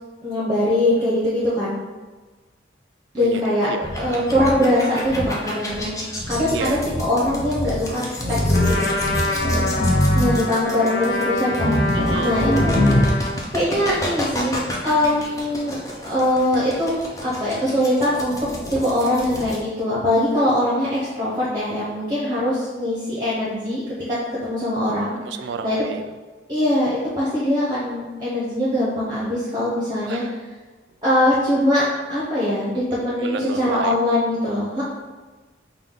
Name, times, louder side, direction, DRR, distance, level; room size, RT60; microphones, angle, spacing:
voice 1, 0.2-1.8 3.1-3.7 3.9-5.9 6.3-8.0 8.3-8.4 8.7-9.0 10.1-12.8 13.5-16.9 17.2-18.4 18.7-23.8 24.4-25.2 25.6-25.8 26.5-30.2 31.0-34.8, left 1 dB, 20° right, -7 dB, 0.8 m, -22 dB
voice 2, 3.2-4.3 6.5-6.8 11.9-12.4 25.2-26.1 30.0-30.3 33.2-34.0, right 5 dB, 65° right, 8 dB, 0.3 m, -31 dB
sound 1, 3.8-19.5, left 1 dB, 15° left, 0.6 m, -24 dB
Trumpet, 8.5-13.4, left 2 dB, 60° left, 0.5 m, -26 dB
5.3 x 2.3 x 3.7 m, 1.3 s
head